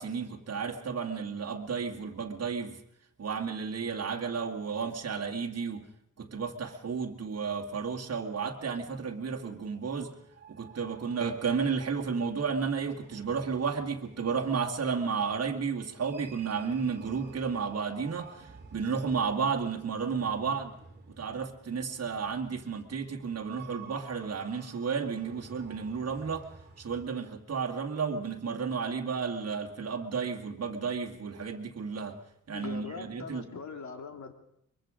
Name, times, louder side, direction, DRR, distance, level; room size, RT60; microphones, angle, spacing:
voice 1, 0.0-2.8 3.2-5.9 6.2-10.1 10.5-20.7 21.2-26.5 26.8-32.2 32.5-33.4, right 5 dB, 50° right, 1 dB, 2.2 m, -32 dB
sound 1, 8.4-27.1, right 5 dB, 30° right, 2.7 m, -53 dB
voice 2, 32.5-34.3, left 5 dB, 60° left, 4 dB, 2.6 m, -41 dB
23.0 x 23.0 x 5.1 m, 0.73 s
wide cardioid pair, 145°, 32 cm